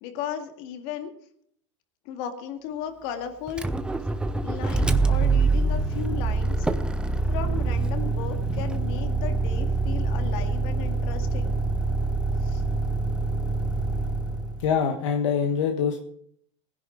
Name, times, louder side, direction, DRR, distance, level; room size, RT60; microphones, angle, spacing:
voice 1, 0.0-1.1 2.1-3.7 4.4-6.7 7.3-11.6 12.4-12.6, left 8 dB, 55° left, 6 dB, 2.0 m, -35 dB
Motor vehicle (road), 3.5-14.7, right 3 dB, 5° right, 0.7 m, -25 dB
voice 2, 14.6-16.0, left 7 dB, 75° left, 4 dB, 1.4 m, -24 dB
19.5 x 10.5 x 3.8 m, 0.66 s
supercardioid pair, 130°, 16 cm